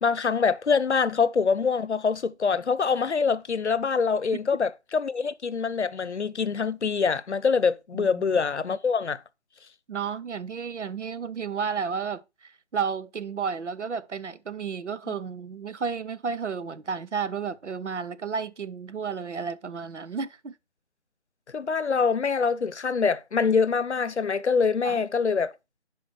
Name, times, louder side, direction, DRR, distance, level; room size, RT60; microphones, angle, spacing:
voice 1, 0.0-9.2 15.1-15.2 21.5-25.5, left 5 dB, 75° left, 0.7 m, -25 dB
voice 2, 7.9-8.2 9.9-20.5 24.8-25.0, right 6 dB, 85° right, 0.8 m, -32 dB
10.5 x 4.9 x 3.2 m
figure-of-eight pair, 175°, 35 cm